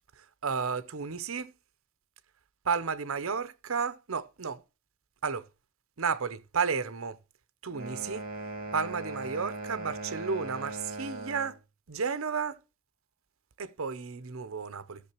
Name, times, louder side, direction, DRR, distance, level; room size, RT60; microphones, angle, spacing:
voice 1, 0.2-1.5 2.6-4.6 5.2-5.5 6.0-7.2 7.6-8.2 8.7-11.6 11.9-12.6 13.6-15.0, right 5 dB, 65° right, 0.7 m, -32 dB
sound 1, 7.7-11.6, right 2 dB, 40° right, 2.1 m, -39 dB
15.0 x 6.6 x 2.9 m
head